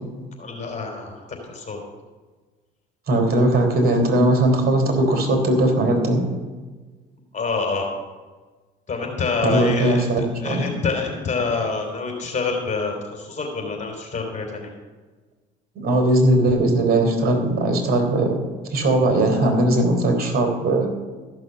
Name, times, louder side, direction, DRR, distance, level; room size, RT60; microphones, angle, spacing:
voice 1, 0.4-1.8 7.3-7.9 8.9-14.7, left 4 dB, 35° left, 2 dB, 3.5 m, -27 dB
voice 2, 3.1-6.2 9.4-10.6 15.8-18.4 18.7-20.9, right 1 dB, 55° right, 2 dB, 3.6 m, -19 dB
14.0 x 6.2 x 6.8 m, 1.3 s
supercardioid pair, 85°, 20 cm